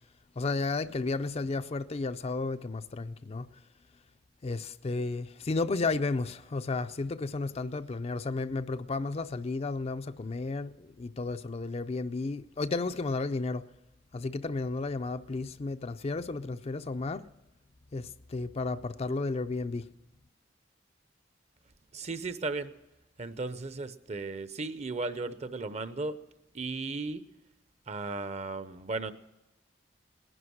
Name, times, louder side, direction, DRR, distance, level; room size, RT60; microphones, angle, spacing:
voice 1, 0.4-3.5 4.4-13.6 14.1-17.3 17.9-19.8, left 3 dB, 35° left, 0.5 m, -33 dB
voice 2, 21.9-22.7 23.2-26.2 26.5-27.2 27.9-29.1, right 3 dB, 40° right, 0.7 m, -35 dB
19.0 x 11.0 x 6.3 m
head